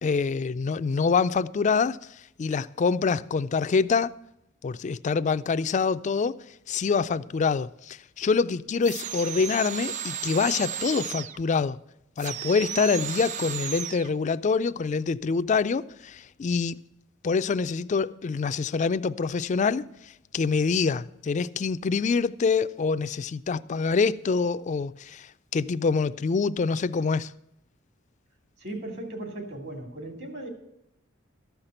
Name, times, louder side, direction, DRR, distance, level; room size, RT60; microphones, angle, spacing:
voice 1, 0.0-2.0 2.4-4.1 4.6-6.4 6.7-11.8 12.2-16.8 17.2-19.9 20.3-27.3, left 5 dB, 35° left, 0.3 m, -25 dB
sound 1, 8.8-11.4 12.2-14.1, right 9 dB, 35° right, 0.4 m, -34 dB
voice 2, 28.6-30.5, right 1 dB, 55° right, 2.6 m, -37 dB
13.5 x 5.8 x 7.8 m
head